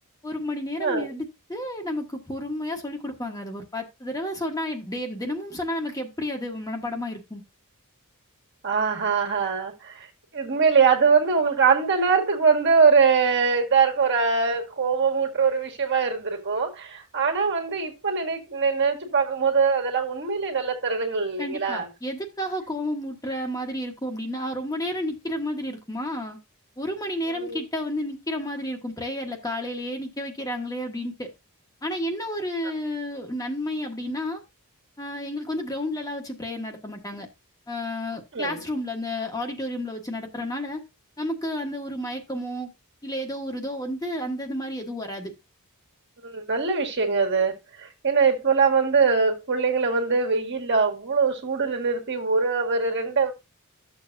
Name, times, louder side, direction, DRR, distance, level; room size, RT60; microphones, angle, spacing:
voice 1, 0.2-7.4 21.4-26.4 26.8-31.3 31.8-34.4 35.0-37.3 37.7-40.8 41.2-42.7 43.0-45.3, left 1 dB, 15° left, 1.3 m, -31 dB
voice 2, 8.6-10.1 10.3-21.9 27.4-27.6 38.3-38.6 46.2-53.3, right 5 dB, 55° right, 1.7 m, -22 dB
12.5 x 7.0 x 2.6 m
head